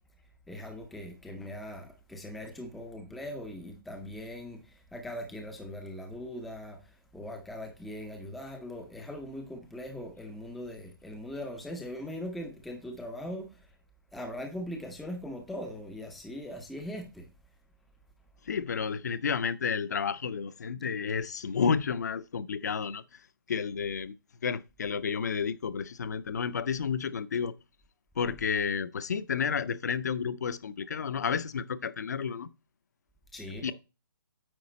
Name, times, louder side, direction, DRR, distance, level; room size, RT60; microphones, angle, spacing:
voice 1, 0.5-13.7 14.1-17.3 33.3-33.7, left 1 dB, ahead, 0.4 m, -40 dB
voice 2, 18.5-23.0 23.5-24.1 24.4-27.5 28.2-32.5 33.6-33.7, left 6 dB, 50° left, 0.6 m, -31 dB
9.0 x 4.8 x 4.1 m
hypercardioid pair, 170°, 12 cm